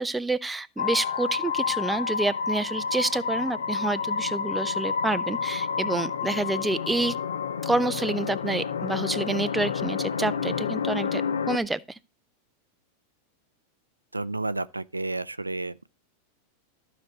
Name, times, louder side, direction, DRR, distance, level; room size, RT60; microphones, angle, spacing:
voice 1, 0.0-7.2 7.6-12.0, right 2 dB, 5° right, 0.4 m, -28 dB
sound 1, 0.8-11.6, left 6 dB, 65° left, 0.6 m, -29 dB
voice 2, 14.1-15.9, right 2 dB, 85° right, 0.4 m, -31 dB
14.5 x 5.1 x 3.0 m
figure-of-eight pair, 90°, 0 cm